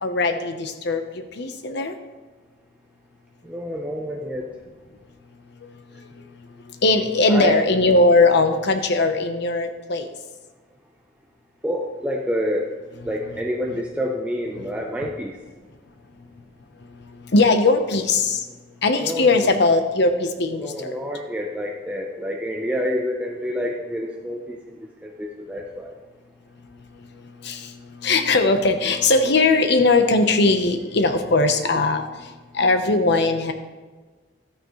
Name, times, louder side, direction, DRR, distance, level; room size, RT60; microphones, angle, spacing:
voice 1, 0.0-1.9 6.8-10.1 17.3-18.4 18.8-21.0 27.4-27.6 28.0-32.0 32.5-33.5, left 3 dB, 65° left, 7 dB, 1.0 m, -19 dB
voice 2, 3.4-4.5 7.3-7.6 11.6-12.7 13.0-15.4 19.0-19.6 20.6-25.9, equal, 5° right, -1 dB, 0.7 m, -28 dB
13.0 x 9.2 x 3.2 m, 1.3 s
head